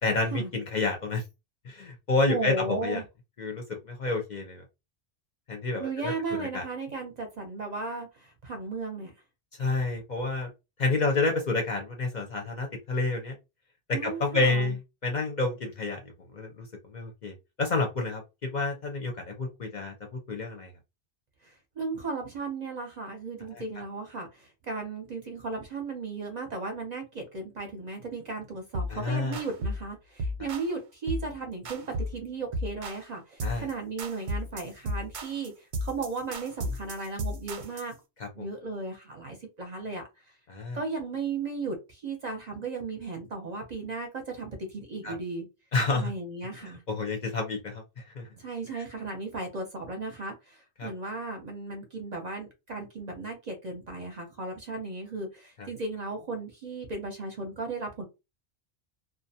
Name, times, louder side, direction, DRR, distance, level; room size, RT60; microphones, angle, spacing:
voice 1, 0.0-1.2 1.6-3.0 3.4-4.6 5.5-6.1 6.4-6.7 9.6-10.5 10.8-13.4 14.0-16.0 16.3-20.7 23.5-23.6 28.9-29.4 33.4-33.6 38.2-38.3 40.5-40.8 45.0-45.1 45.7-46.1 46.6-48.3 48.7-48.8 50.8-50.9 55.6-55.7, left 3 dB, 50° left, 0.6 m, -29 dB
voice 2, 2.3-3.0 5.8-9.1 13.9-14.8 21.4-38.0 38.3-40.0 40.7-45.4 45.9-46.8 48.4-58.0, right 3 dB, 45° right, 0.6 m, -35 dB
sound 1, 28.7-29.0 29.3-29.8 30.2-30.7 31.1-31.3 31.6-32.2 32.5-33.1 33.4-33.7 34.0-37.9, equal, 90° right, 0.9 m, -34 dB
2.4 x 2.1 x 2.7 m
omnidirectional pair, 1.1 m